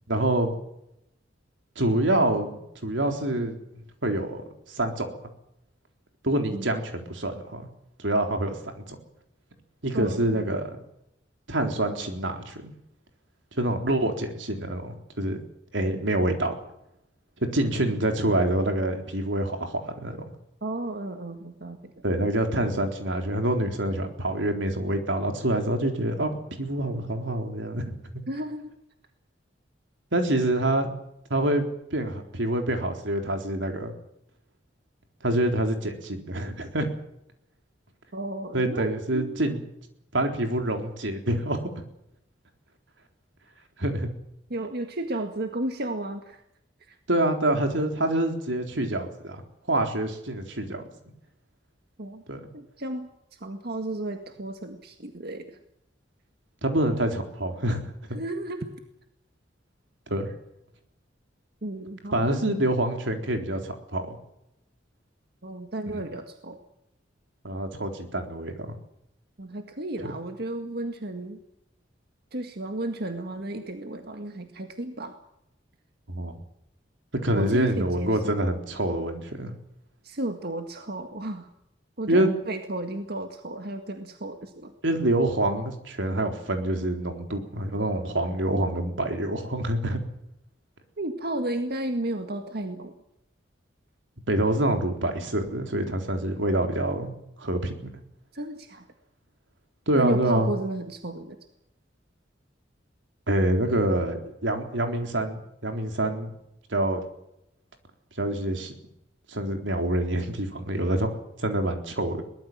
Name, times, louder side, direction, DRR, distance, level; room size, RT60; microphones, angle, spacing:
voice 1, 0.1-0.6 1.8-3.6 4.0-4.4 4.7-5.1 6.2-7.7 8.0-8.6 8.9-9.0 9.8-10.6 11.5-12.7 13.6-15.4 15.7-16.5 17.5-20.2 22.0-28.0 30.1-30.9 31.3-33.9 35.2-36.9 38.5-39.6 40.1-41.8 43.8-44.1 47.1-49.4 49.7-50.8 52.3-52.5 56.6-57.9 60.1-60.3 62.1-64.2 65.9-66.0 67.4-68.6 70.0-70.1 76.1-76.4 77.2-79.5 82.1-82.3 84.8-90.0 94.3-97.1 97.4-98.0 99.9-100.5 103.3-106.3 106.7-107.0 108.2-108.7 109.3-112.2, right 1 dB, 90° right, 4 dB, 3.9 m, -26 dB
voice 2, 9.9-10.5 20.6-21.9 28.3-28.7 38.1-39.5 44.5-46.4 46.9-47.0 52.0-52.2 52.5-55.6 58.1-58.7 61.6-62.4 65.4-66.6 69.4-71.4 72.3-75.2 77.3-78.4 80.0-81.5 82.0-84.7 91.0-92.9 98.3-98.9 100.0-101.4, right 1 dB, 60° right, 5 dB, 1.9 m, -33 dB
22.5 x 19.5 x 7.5 m, 0.80 s
head